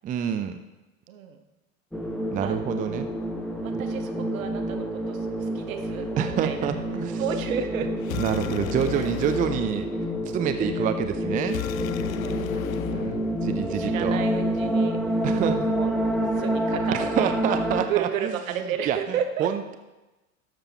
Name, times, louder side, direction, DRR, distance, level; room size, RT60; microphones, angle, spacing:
voice 1, 0.0-0.6 2.3-3.1 3.7-3.8 6.2-7.2 8.2-9.9 10.3-11.6 12.9-14.2 15.2-15.7 16.2-16.3 16.9-18.3 18.9-19.0 19.4-19.8, right 9 dB, 20° right, 9 dB, 0.5 m, -27 dB
voice 2, 1.1-1.4 2.4-2.8 3.6-6.7 7.2-7.9 8.9-9.1 10.6-11.0 12.1-13.2 13.7-15.2 15.6-17.3 17.9-19.5, right 8 dB, 65° right, 6 dB, 1.2 m, -33 dB
sound 1, 1.9-17.8, equal, ahead, 1.4 m, -28 dB
sound 2, 8.0-14.0, left 13 dB, 65° left, 0.6 m, -35 dB
12.0 x 6.9 x 4.4 m, 1.1 s
figure-of-eight pair, 80°, 43 cm